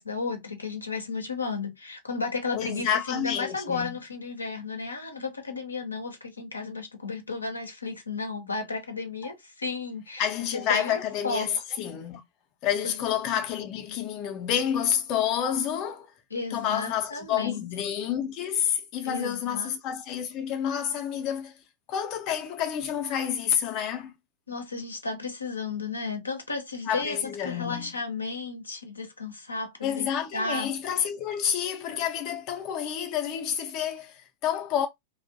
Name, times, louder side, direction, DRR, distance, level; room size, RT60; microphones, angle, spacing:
voice 1, 0.0-10.3 10.7-11.5 16.3-17.6 19.0-19.7 24.5-30.7, left 4 dB, 80° left, 0.6 m, -33 dB
voice 2, 2.5-4.0 9.2-9.3 10.2-12.2 12.6-16.1 16.5-21.5 21.9-24.1 26.9-27.9 29.8-34.9, left 9 dB, 40° left, 0.5 m, -29 dB
2.5 x 2.0 x 2.4 m
figure-of-eight pair, 90°, 0 cm